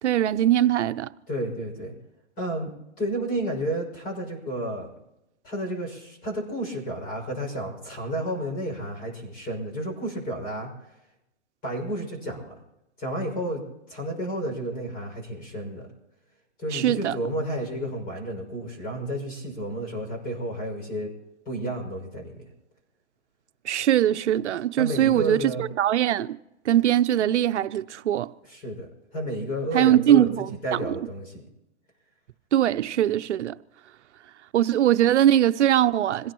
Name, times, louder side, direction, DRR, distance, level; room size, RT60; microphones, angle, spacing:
voice 1, 0.0-1.1 16.7-17.1 23.6-26.4 26.7-28.3 29.7-31.0 32.5-33.6 34.5-36.3, right 12 dB, 70° right, 0.8 m, -21 dB
voice 2, 1.3-1.9 2.4-4.9 5.4-10.7 11.6-12.6 13.0-13.6 13.9-15.9 16.6-21.1 21.4-22.5 24.8-25.6 28.5-31.4, right 1 dB, 25° left, 6.3 m, -31 dB
26.5 x 17.0 x 3.1 m
hypercardioid pair, 150°, 35 cm